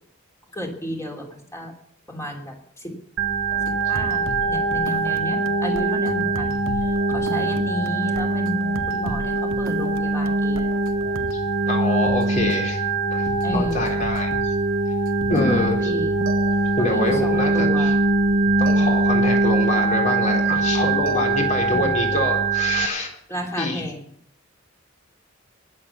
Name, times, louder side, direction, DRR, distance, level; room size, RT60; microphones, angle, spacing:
voice 1, 0.5-1.7 2.1-2.9 3.9-6.6 7.1-10.7 13.4-14.0 15.3-16.2 16.8-18.0 21.6-21.9 23.3-24.0, equal, 15° left, 1 dB, 3.1 m, -31 dB
Organ, 3.2-22.9, right 3 dB, 70° right, 1.2 m, -22 dB
sound 1, 3.5-11.5 12.1-12.5 13.3-14.7 15.1-15.9 16.3-17.1 18.7-19.5 21.1-21.9, right 3 dB, 90° right, 0.9 m, -36 dB
voice 2, 11.7-12.8 13.1-13.3 13.5-14.3 15.3-15.9 16.8-17.9 18.6-23.1 23.6-23.8, left 2 dB, 35° left, 1 dB, 3.8 m, -25 dB
20.0 x 7.6 x 7.1 m, 0.70 s
head